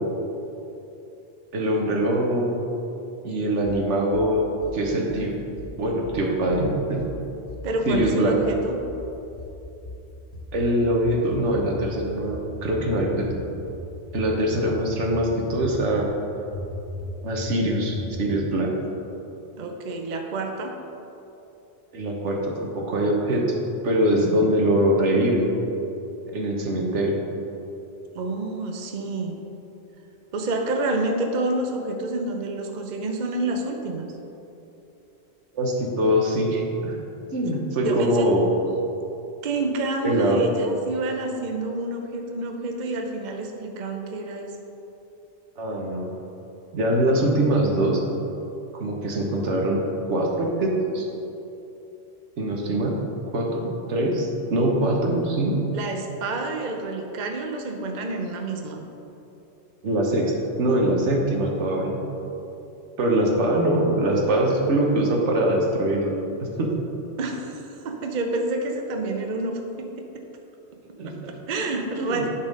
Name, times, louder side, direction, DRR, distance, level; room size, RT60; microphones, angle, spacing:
voice 1, 1.5-2.6 3.2-5.3 5.8-7.0 7.9-8.4 10.5-13.3 14.1-16.1 17.2-18.7 21.9-23.5 23.8-25.5 26.3-27.2 35.5-37.0 37.3-38.4 40.0-40.4 45.6-46.1 46.7-48.0 48.7-49.8 50.1-51.1 52.4-53.0 53.3-55.6 59.8-62.0 63.0-66.1 66.4-66.7 71.0-71.1 72.0-72.2, right 1 dB, 85° right, 0 dB, 1.4 m, -23 dB
sound 1, 3.7-4.3 4.6-5.3 5.6-6.3 6.5-7.2 7.5-8.2 8.4-9.1 9.4-10.1 10.3-11.0 11.3-12.0 12.2-12.9 13.2-13.8 14.1-14.8 15.1-15.7 16.0-16.2 16.5-17.2 17.5-17.6 17.9-18.4, left 1 dB, 55° left, 1.1 m, -37 dB
voice 2, 7.6-8.8 19.6-20.7 28.1-29.4 30.3-34.1 37.8-38.3 39.4-44.6 55.7-58.9 67.2-69.9 71.0-72.3, right 2 dB, 45° right, 3 dB, 0.8 m, -28 dB
10.5 x 4.3 x 5.2 m, 2.9 s
omnidirectional pair, 1.2 m